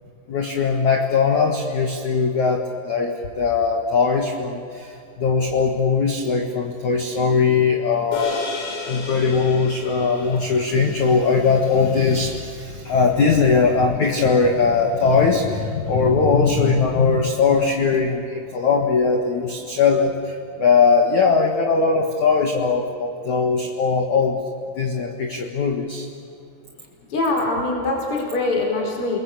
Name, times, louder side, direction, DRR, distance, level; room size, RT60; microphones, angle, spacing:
voice 1, 0.3-8.5 8.9-24.4 24.8-26.1, left 5 dB, 65° left, 3 dB, 1.9 m, -20 dB
sound 1, 8.1-12.7, left 4 dB, 80° left, 7.2 m, -34 dB
voice 2, 27.1-29.2, left 2 dB, 30° left, 1 dB, 4.7 m, -23 dB
29.5 x 21.5 x 8.4 m, 2.6 s
omnidirectional pair, 5.9 m